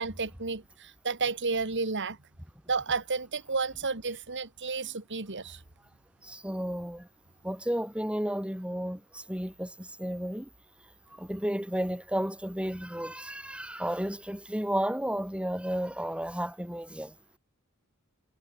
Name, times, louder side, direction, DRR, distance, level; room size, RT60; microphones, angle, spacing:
voice 1, 0.0-2.2 2.7-5.6, right 4 dB, 55° right, 2.4 m, -31 dB
voice 2, 6.2-7.1 7.4-10.5 11.1-17.1, equal, 5° right, 4.1 m, -33 dB
head